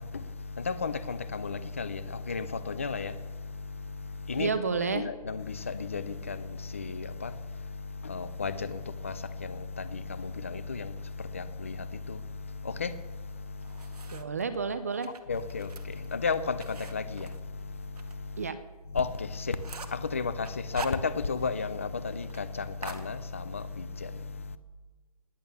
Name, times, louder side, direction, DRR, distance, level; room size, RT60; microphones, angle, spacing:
voice 1, 0.0-4.5 4.9-14.2 15.1-18.5 18.8-24.6, left 4 dB, 20° left, 0.5 m, -34 dB
voice 2, 4.4-5.0 14.1-15.1 18.4-18.6, right 5 dB, 25° right, 0.6 m, -30 dB
sound 1, 13.3-14.4 14.9-18.1 18.5-18.6 19.0-19.1 19.3-20.1 20.4-21.5 21.8-21.9 22.2-22.4 22.8-23.7, right 4 dB, 80° right, 1.9 m, -44 dB
19.5 x 8.5 x 6.9 m
hypercardioid pair, 175°, 19 cm